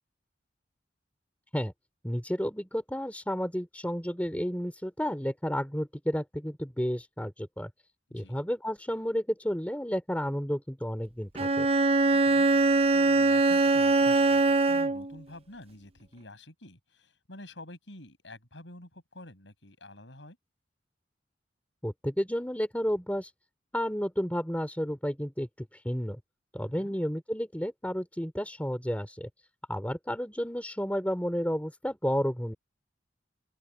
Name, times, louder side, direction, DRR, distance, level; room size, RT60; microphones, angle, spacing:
voice 1, 2.0-7.7 8.1-11.7 21.8-23.3 23.7-26.2 26.5-29.3 29.7-32.5, equal, 10° left, 3.0 m, -31 dB
Bowed string instrument, 11.3-15.2, right 3 dB, 30° right, 0.6 m, -23 dB
voice 2, 12.9-20.4 26.6-26.9, left 1 dB, 80° left, 8.0 m, -48 dB
open air
head